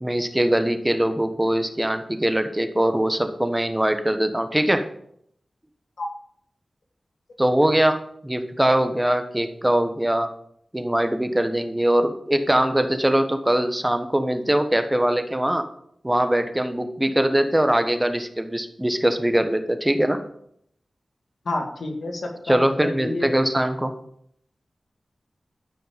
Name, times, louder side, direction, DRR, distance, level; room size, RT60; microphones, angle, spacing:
voice 1, 0.0-4.9 7.4-10.3 10.7-15.7 16.0-20.2 22.5-23.9, right 1 dB, 15° right, 8 dB, 1.2 m, -22 dB
voice 2, 21.5-23.3, left 2 dB, 85° left, 2 dB, 2.0 m, -29 dB
13.5 x 5.7 x 5.1 m, 0.68 s
cardioid pair, 50°, 0 cm